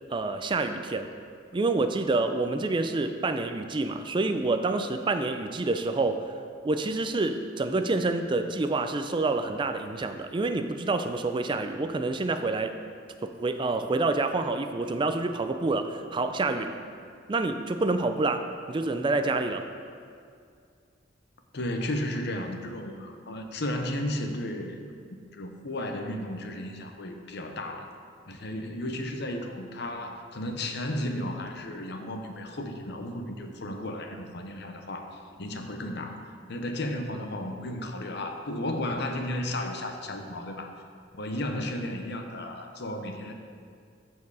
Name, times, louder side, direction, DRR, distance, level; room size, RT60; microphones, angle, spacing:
voice 1, 0.1-1.1 1.5-6.3 6.6-12.7 13.2-16.8 17.3-19.6, right 3 dB, 25° right, 8 dB, 0.4 m, -27 dB
voice 2, 21.5-24.8 25.3-27.9 28.3-36.2 36.5-40.7 41.1-43.3, left 1 dB, 60° left, 4 dB, 0.9 m, -34 dB
14.0 x 4.7 x 4.8 m, 2.3 s
head